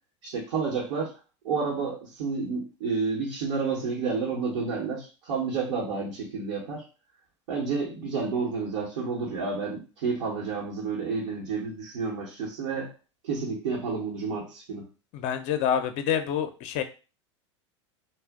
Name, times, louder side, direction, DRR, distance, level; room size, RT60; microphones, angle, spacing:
voice 1, 0.2-1.1 1.4-6.8 7.5-12.9 13.2-14.9, right 4 dB, 65° right, -4 dB, 0.9 m, -30 dB
voice 2, 15.1-16.8, left 9 dB, 45° left, 8 dB, 0.5 m, -27 dB
2.5 x 2.0 x 3.5 m, 0.33 s
hypercardioid pair, 90°, 16 cm